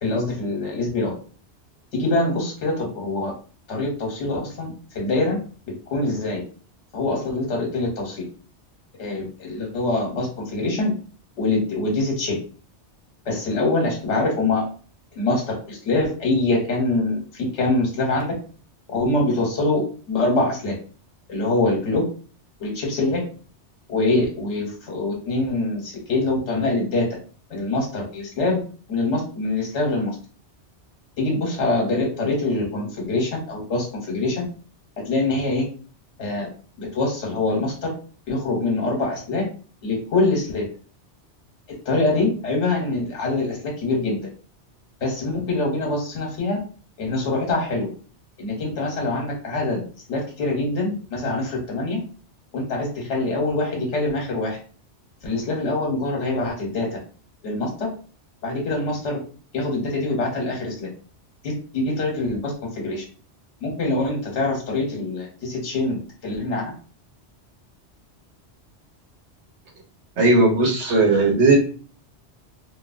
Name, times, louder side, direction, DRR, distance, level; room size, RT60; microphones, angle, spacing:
voice 1, 0.0-1.1 1.9-3.3 3.7-5.4 5.9-6.4 6.9-8.2 9.0-10.9 11.4-12.4 13.2-14.6 15.1-18.3 18.9-19.8 20.1-20.7 21.3-22.0 22.6-23.2 23.9-27.2 27.5-28.6 28.9-30.1 31.2-34.4 35.0-35.6 36.2-36.5 36.8-37.9 38.3-39.4 39.8-40.6 41.8-44.3 45.0-46.6 47.0-47.9 48.4-49.8 50.1-52.0 52.5-54.6 55.2-57.0 57.4-57.9 58.4-59.2 59.5-60.9 61.4-63.0 63.6-66.0 66.2-66.7, left 2 dB, 75° left, -1 dB, 1.2 m, -24 dB
voice 2, 70.2-71.6, right 2 dB, 75° right, 1 dB, 1.1 m, -17 dB
3.1 x 2.2 x 2.4 m, 0.40 s
omnidirectional pair, 1.2 m